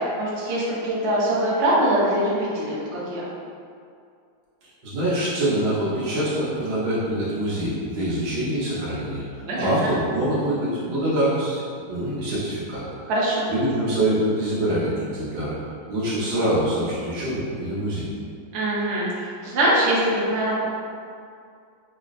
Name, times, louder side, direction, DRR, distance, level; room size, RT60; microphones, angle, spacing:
voice 1, 0.2-3.3 9.5-9.9 13.1-13.5 18.5-20.6, right 1 dB, 55° right, -7 dB, 0.8 m, -23 dB
voice 2, 4.6-11.6 11.9-12.8 13.5-15.6 15.9-18.1, right 1 dB, 85° right, -9 dB, 1.9 m, -25 dB
5.9 x 2.0 x 2.5 m, 2.3 s
omnidirectional pair, 2.1 m